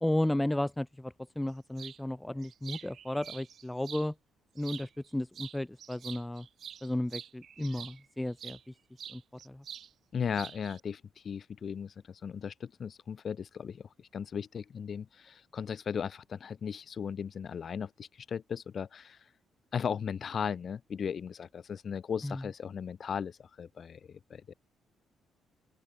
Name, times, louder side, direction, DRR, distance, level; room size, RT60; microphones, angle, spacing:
voice 1, 0.0-4.1 4.6-6.5 6.8-8.7 9.1-9.6 22.2-22.5, left 1 dB, 10° left, 0.9 m, -34 dB
sound 1, 1.8-2.0 2.4-4.1 4.6-5.1 5.3-8.6 9.0-9.9 10.1-10.8, right 8 dB, 60° right, 1.9 m, -46 dB
voice 2, 10.1-19.2 19.7-24.5, left 7 dB, 50° left, 0.5 m, -37 dB
open air
cardioid pair, 90°, 0 cm